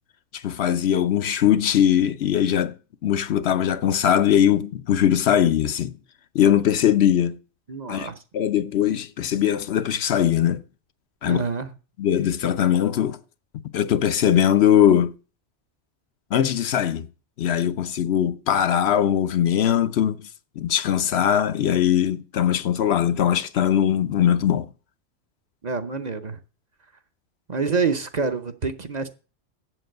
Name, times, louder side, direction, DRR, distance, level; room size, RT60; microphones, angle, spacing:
voice 1, 0.3-2.7 3.0-6.0 6.3-7.4 7.9-8.1 8.3-10.6 11.2-11.4 12.0-13.2 13.7-15.1 16.3-17.1 17.4-20.2 20.6-24.7, left 10 dB, 65° left, 0.9 m, -20 dB
voice 2, 7.7-8.2 11.2-11.7 25.6-26.4 27.5-29.1, right 5 dB, 40° right, 0.8 m, -27 dB
7.8 x 7.5 x 7.7 m
omnidirectional pair, 1.2 m